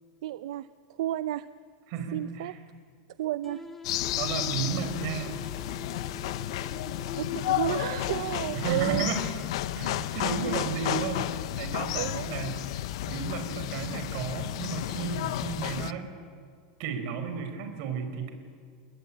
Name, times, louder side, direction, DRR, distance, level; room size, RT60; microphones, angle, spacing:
voice 1, 0.2-0.7 1.0-1.5 2.1-2.5 3.2-3.6 7.2-9.1 11.9-12.4, right 14 dB, 70° right, 14 dB, 0.6 m, -31 dB
voice 2, 1.9-2.6 4.2-5.4 8.5-9.3 9.7-12.8 13.1-16.1 16.8-18.3, right 6 dB, 45° right, 7 dB, 4.4 m, -33 dB
sound 1, 3.4-9.4, left 1 dB, 10° left, 1.8 m, -45 dB
sound 2, 3.8-15.9, left 14 dB, 65° left, 0.9 m, -32 dB
30.0 x 20.5 x 8.6 m, 2.2 s
supercardioid pair, 170°, 3 cm